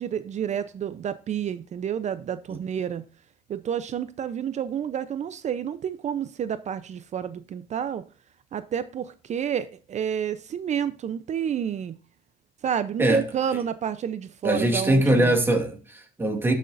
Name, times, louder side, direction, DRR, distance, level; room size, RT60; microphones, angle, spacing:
voice 1, 0.0-3.0 3.5-8.0 8.5-12.0 12.6-15.3, right 8 dB, 45° right, 0.6 m, -30 dB
voice 2, 14.4-16.5, right 1 dB, 15° right, 2.3 m, -22 dB
12.5 x 6.4 x 2.6 m
cardioid pair, 110°, 17 cm